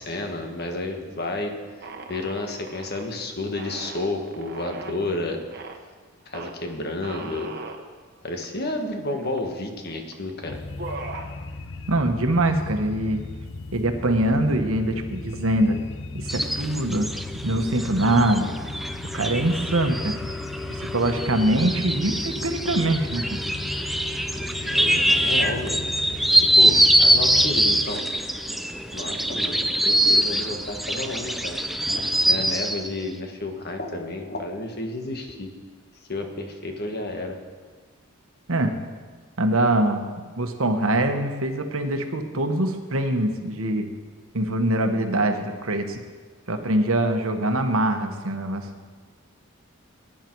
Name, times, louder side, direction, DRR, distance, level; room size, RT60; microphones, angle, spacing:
voice 1, 0.0-1.5 1.8-5.4 6.2-7.5 8.2-10.6 24.6-25.8 26.5-28.1 28.9-31.6 31.9-35.5 36.1-37.4, left 2 dB, 50° left, 4 dB, 1.5 m, -31 dB
sound 1, 1.8-3.1 3.5-5.0 5.5-5.8 6.3-6.5 7.0-7.8 8.4-8.5 8.7-9.5 10.1-10.3 10.6-11.3, right 3 dB, 50° right, 1.2 m, -38 dB
sound 2, 10.4-27.9, left 2 dB, 65° left, 0.8 m, -36 dB
voice 2, 11.9-13.2 13.7-15.8 16.1-17.1 17.4-18.5 19.1-20.2 20.7-23.4 38.5-38.7 39.4-43.9 44.3-46.0 46.5-48.7, right 1 dB, 75° right, 6 dB, 1.3 m, -23 dB
sound 3, 16.3-32.9, right 1 dB, ahead, 0.5 m, -23 dB
17.0 x 10.0 x 4.7 m, 1.5 s
head